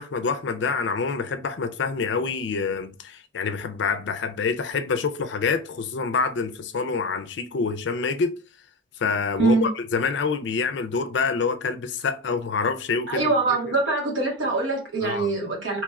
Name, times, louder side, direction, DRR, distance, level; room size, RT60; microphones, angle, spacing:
voice 1, 0.0-8.4 9.0-13.3 13.7-13.8 15.0-15.3, left 5 dB, 65° left, 0.4 m, -26 dB
voice 2, 9.4-9.7 13.1-15.8, right 3 dB, 80° right, 1.4 m, -23 dB
2.9 x 2.3 x 3.1 m
head